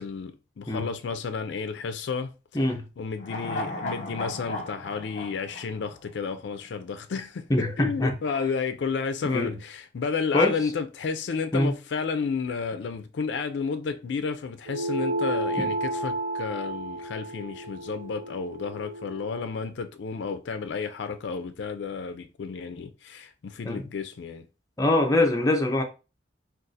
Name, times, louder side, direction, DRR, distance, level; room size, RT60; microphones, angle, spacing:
voice 1, 0.0-2.3 3.0-24.5, left 5 dB, 70° left, 0.4 m, -32 dB
voice 2, 2.5-2.9 7.5-8.1 9.2-9.6 10.3-10.6 11.5-11.7 15.6-15.7 23.6-23.8 24.8-25.8, left 2 dB, 20° left, 0.6 m, -23 dB
sound 1, 3.2-6.6 6.9-7.0, left 1 dB, 40° left, 0.9 m, -36 dB
sound 2, 14.7-19.5, right 1 dB, 70° right, 0.6 m, -32 dB
2.5 x 2.4 x 3.9 m
head